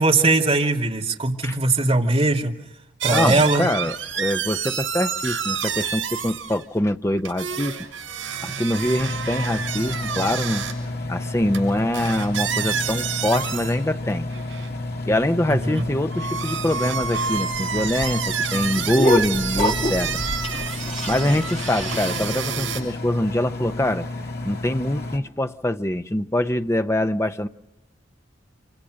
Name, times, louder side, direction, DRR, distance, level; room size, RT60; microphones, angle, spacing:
voice 1, 0.0-2.5 3.0-3.7 15.5-15.8, right 2 dB, 30° right, 2.5 m, -20 dB
sound 1, 3.0-6.6 7.2-10.7 11.5-11.6 11.9-13.8 14.3-14.7 15.7-22.8, right 7 dB, 80° right, 7.0 m, -29 dB
voice 2, 3.1-7.8 8.4-10.7 11.1-14.2 15.1-20.2 21.1-24.1 24.4-27.5, left 1 dB, 15° left, 0.8 m, -24 dB
Engine, 8.8-25.2, left 2 dB, 55° left, 2.2 m, -31 dB
sound 2, 16.8-22.4, left 1 dB, 35° left, 1.8 m, -28 dB
27.5 x 25.0 x 6.5 m
head